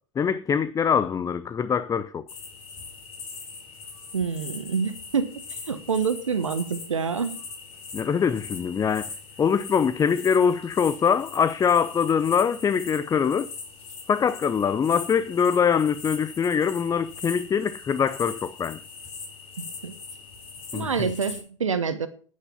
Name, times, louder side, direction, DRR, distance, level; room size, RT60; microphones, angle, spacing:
voice 1, 0.2-2.2 7.9-13.5 14.1-18.8 20.7-21.1, left 7 dB, 20° left, 0.7 m, -23 dB
sound 1, 2.3-21.4, left 5 dB, 35° left, 4.9 m, -41 dB
voice 2, 4.1-7.4 19.6-19.9 20.7-22.1, right 6 dB, 80° right, 1.4 m, -27 dB
9.6 x 9.6 x 7.0 m
figure-of-eight pair, 85°, 16 cm